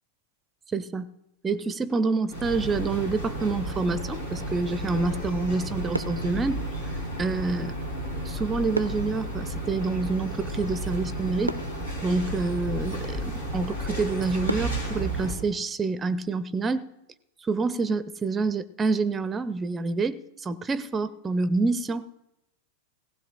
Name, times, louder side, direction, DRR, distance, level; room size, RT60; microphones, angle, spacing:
voice 1, 0.7-1.1 1.4-6.6 7.2-7.8 8.2-11.6 12.0-16.9 17.4-22.0, right 3 dB, 15° right, 17 dB, 0.5 m, -27 dB
sound 1, 2.3-15.3, right 1 dB, 85° left, 3.1 m, -32 dB
sound 2, 5.9-7.4 8.7-10.7 11.1-11.2 11.5-13.0 13.6-13.7 14.5-16.4 16.7-16.9, right 1 dB, 90° right, 0.4 m, -37 dB
18.0 x 16.0 x 2.5 m, 0.88 s
figure-of-eight pair, 90°, 0 cm